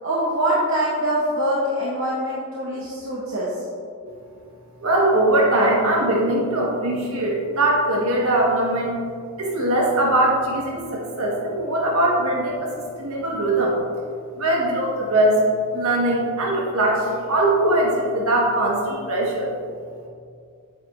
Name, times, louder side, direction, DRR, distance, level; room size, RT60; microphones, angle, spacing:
voice 1, 0.0-3.5, right 1 dB, 60° right, -6 dB, 1.0 m, -24 dB
voice 2, 4.8-9.0 9.4-12.7 13.0-13.7 14.4-15.4 15.7-19.5, right 1 dB, 75° right, -2 dB, 1.6 m, -21 dB
8.1 x 7.2 x 2.7 m, 2.3 s
head